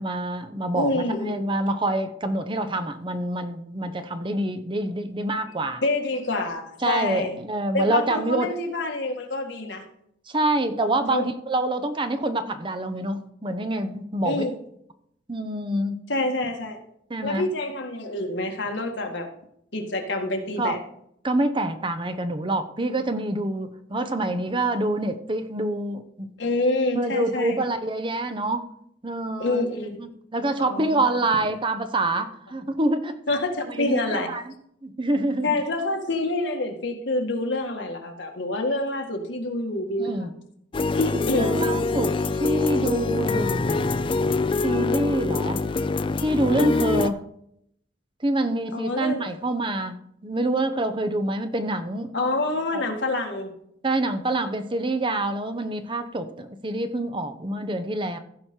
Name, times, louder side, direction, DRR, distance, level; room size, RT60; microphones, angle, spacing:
voice 1, 0.0-5.8 6.8-8.5 10.3-14.4 15.3-16.0 17.1-17.5 20.6-20.8 21.2-26.3 26.9-28.7 29.0-29.6 30.0-33.2 33.7-34.5 34.8-35.6 40.0-40.3 41.4-43.9 44.6-45.6 46.2-47.2 48.2-50.0 50.2-52.1 53.8-58.2, right 1 dB, 25° right, 9 dB, 0.8 m, -26 dB
voice 2, 0.7-1.4 5.8-7.4 7.7-9.8 11.1-11.3 14.2-14.6 16.1-16.8 17.2-19.3 19.7-20.8 26.4-27.6 29.4-30.0 30.6-31.0 33.3-34.3 35.4-40.3 40.9-41.6 48.7-49.2 52.1-53.5, left 2 dB, 70° left, 3 dB, 1.8 m, -27 dB
sound 1, 40.7-47.1, left 3 dB, 25° left, 0.4 m, -24 dB
15.5 x 5.2 x 4.4 m, 0.72 s
head